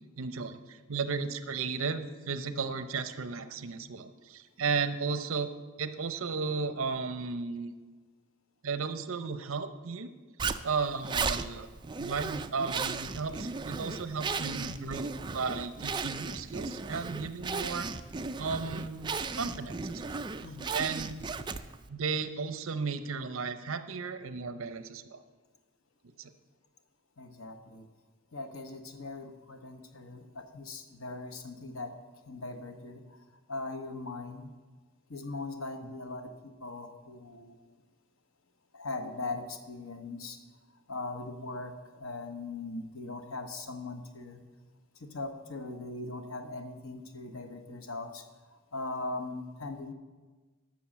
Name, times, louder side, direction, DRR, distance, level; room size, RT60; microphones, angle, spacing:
voice 1, 0.2-5.5 5.8-7.7 8.6-10.1 10.6-11.7 12.0-17.9 18.4-20.2 20.7-21.2 21.9-25.2 26.2-26.3 35.8-35.9, right 5 dB, 75° right, 11 dB, 0.7 m, -34 dB
Zipper (clothing), 10.4-21.9, right 4 dB, 20° right, 0.4 m, -36 dB
voice 2, 20.4-20.8 27.2-27.9 28.3-32.0 32.3-33.2 33.5-34.5 35.1-37.7 38.7-40.4 40.9-44.4 45.0-48.3 48.7-49.9, left 2 dB, 80° left, 7 dB, 1.1 m, -40 dB
11.5 x 6.2 x 7.4 m, 1.3 s
head